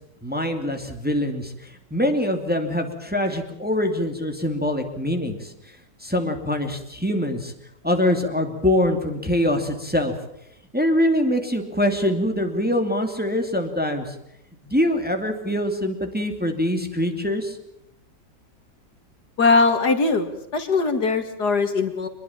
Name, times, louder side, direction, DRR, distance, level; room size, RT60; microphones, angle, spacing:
voice 1, 0.2-5.5 6.0-7.5 7.8-10.1 10.7-14.2 14.6-17.6, left 1 dB, 5° right, 4 dB, 2.5 m, -24 dB
voice 2, 19.4-22.1, left 4 dB, 65° left, 8 dB, 2.5 m, -20 dB
25.0 x 21.0 x 7.3 m, 0.79 s
omnidirectional pair, 1.9 m